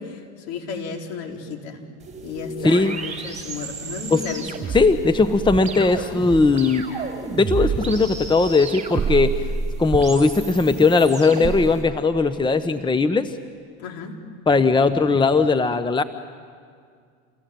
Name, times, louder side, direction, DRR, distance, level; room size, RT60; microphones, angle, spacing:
voice 1, 0.0-1.8 2.2-4.7 13.8-14.2, left 5 dB, 65° left, 2 dB, 4.1 m, -33 dB
sound 1, 2.0-11.8, right 5 dB, 20° right, 5.4 m, -30 dB
voice 2, 2.6-3.0 4.1-4.3 4.7-6.8 7.4-9.3 9.8-13.3 14.5-16.0, left 3 dB, 15° left, 11 dB, 1.0 m, -18 dB
28.5 x 21.5 x 9.3 m, 2.1 s
hypercardioid pair, 95°, 35 cm